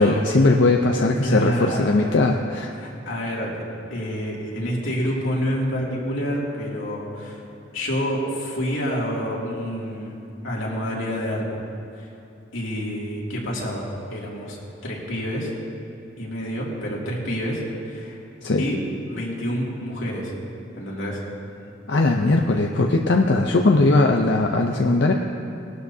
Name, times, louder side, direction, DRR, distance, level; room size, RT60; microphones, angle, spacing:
voice 1, 0.0-2.7 18.4-18.6 21.9-25.1, left 2 dB, 65° left, 2 dB, 0.6 m, -19 dB
voice 2, 1.2-2.2 2.8-3.6 3.9-7.4 7.7-10.2 10.4-11.4 12.5-15.5 16.2-18.2 18.6-20.3 20.8-21.2, equal, 90° left, -4 dB, 2.6 m, -28 dB
19.0 x 12.5 x 2.8 m, 2.9 s
head